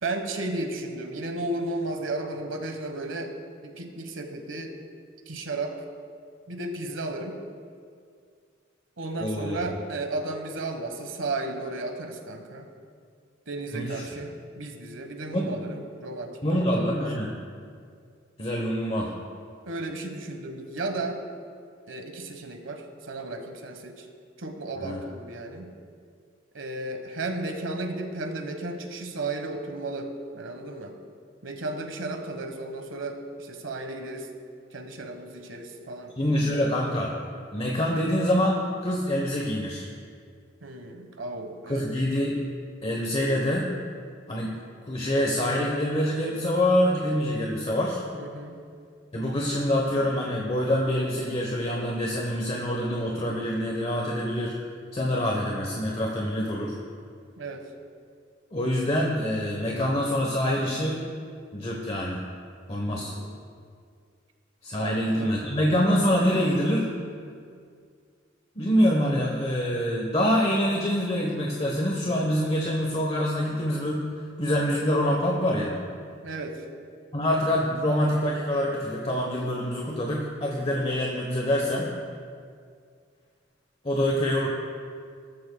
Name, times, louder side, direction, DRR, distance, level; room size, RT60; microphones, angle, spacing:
voice 1, 0.0-3.3 3.6-4.7 5.3-5.7 6.5-7.4 9.0-12.7 13.5-17.1 19.6-21.3 21.9-24.1 24.4-25.7 26.5-30.9 31.4-34.3 34.7-36.2 40.6-41.9 48.1-48.6 57.4-57.6 62.9-63.4 64.8-65.3 76.2-76.6, right 2 dB, 90° right, 5 dB, 1.4 m, -34 dB
voice 2, 9.2-9.6 13.7-14.0 15.3-15.5 16.4-17.3 18.4-19.1 24.8-25.0 36.2-37.1 37.5-39.9 41.7-42.4 42.8-43.7 44.3-48.0 49.1-54.6 54.9-56.8 58.5-61.0 61.5-62.2 62.7-63.1 64.6-66.9 68.6-74.0 74.4-75.8 77.1-81.9 83.8-84.5, equal, 30° left, -1 dB, 1.0 m, -25 dB
18.0 x 13.5 x 2.3 m, 2.2 s
head